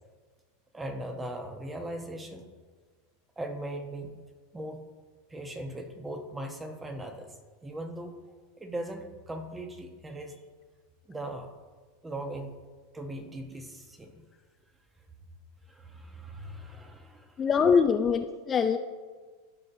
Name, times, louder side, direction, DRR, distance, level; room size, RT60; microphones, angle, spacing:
voice 1, 0.7-2.5 3.4-4.1 4.5-4.8 5.3-8.2 8.6-10.4 11.1-11.5 12.0-12.5 12.9-14.2 15.7-17.8, right 1 dB, 15° right, 5 dB, 1.1 m, -39 dB
voice 2, 17.4-18.8, left 6 dB, 30° left, 7 dB, 0.4 m, -23 dB
14.0 x 5.4 x 2.7 m, 1.4 s
hypercardioid pair, 95°, 0 cm